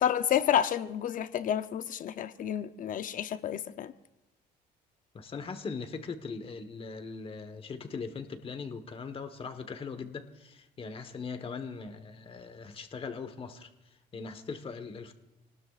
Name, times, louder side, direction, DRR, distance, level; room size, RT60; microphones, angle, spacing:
voice 1, 0.0-3.9, left 10 dB, 50° left, 0.7 m, -30 dB
voice 2, 5.1-13.7 14.1-15.1, left 5 dB, 35° left, 1.3 m, -40 dB
27.5 x 19.0 x 2.5 m
cardioid pair, 110°, 17 cm